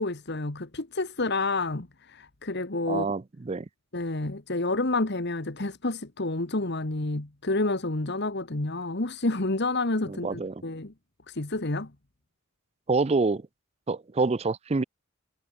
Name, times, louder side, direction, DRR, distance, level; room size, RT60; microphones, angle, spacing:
voice 1, 0.0-3.1 3.9-10.9 11.3-11.9, left 2 dB, 50° left, 1.6 m, -29 dB
voice 2, 2.9-3.7 10.1-10.6 12.9-13.4 13.9-14.8, right 3 dB, 30° right, 0.4 m, -27 dB
head